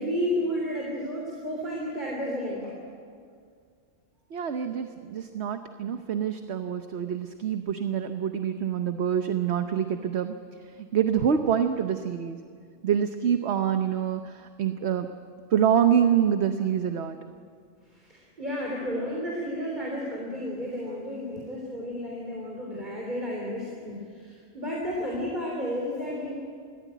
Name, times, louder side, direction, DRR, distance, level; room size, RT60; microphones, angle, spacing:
voice 1, 0.0-2.7 17.9-26.4, equal, 35° right, -2 dB, 3.5 m, -32 dB
voice 2, 4.3-10.3 10.8-12.4 12.8-15.1 15.5-17.2, right 8 dB, 60° right, 7 dB, 1.1 m, -26 dB
22.5 x 15.5 x 9.2 m, 2.1 s
omnidirectional pair, 1.3 m